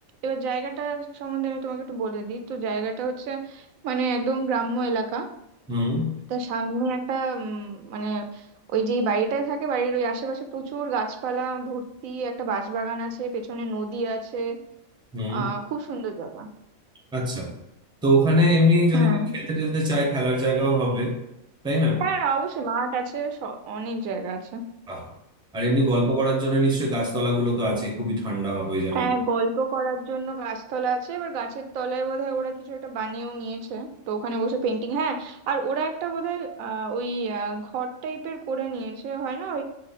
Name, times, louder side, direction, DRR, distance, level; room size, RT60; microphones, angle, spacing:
voice 1, 0.2-5.3 6.3-14.6 15.3-16.5 18.9-19.3 22.0-24.6 28.9-39.6, right 4 dB, 80° right, 6 dB, 1.0 m, -28 dB
voice 2, 5.7-6.1 15.1-15.5 17.1-17.5 18.0-19.1 19.5-21.1 21.6-22.0 24.9-25.0 25.5-29.1, equal, 5° right, 0 dB, 0.7 m, -22 dB
5.4 x 2.3 x 4.0 m, 0.84 s
omnidirectional pair, 1.4 m